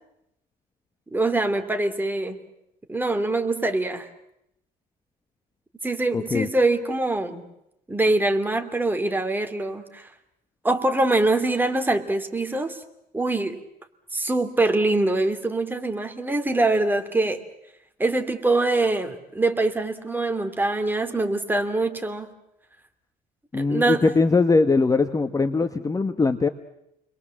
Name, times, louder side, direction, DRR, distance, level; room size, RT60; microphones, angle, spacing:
voice 1, 1.1-2.4 2.9-4.1 5.8-7.5 7.9-10.1 10.6-12.8 13.1-13.6 14.1-17.4 18.0-22.3 23.6-24.1, right 2 dB, 10° right, 7 dB, 2.5 m, -24 dB
voice 2, 6.1-6.5 23.5-26.5, left 3 dB, 20° left, 9 dB, 1.1 m, -21 dB
29.5 x 22.0 x 7.5 m, 0.82 s
cardioid pair, 110°, 17 cm